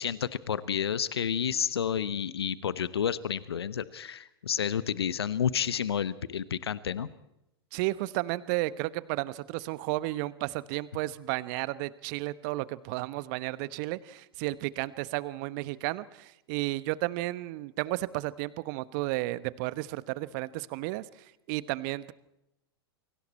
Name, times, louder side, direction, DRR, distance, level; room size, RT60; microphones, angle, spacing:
voice 1, 0.0-7.1, left 8 dB, 75° left, 16 dB, 1.1 m, -30 dB
voice 2, 7.7-21.0 21.5-22.1, right 19 dB, 45° right, 16 dB, 1.1 m, -33 dB
29.5 x 23.5 x 4.4 m, 0.87 s
figure-of-eight pair, 100°, 13 cm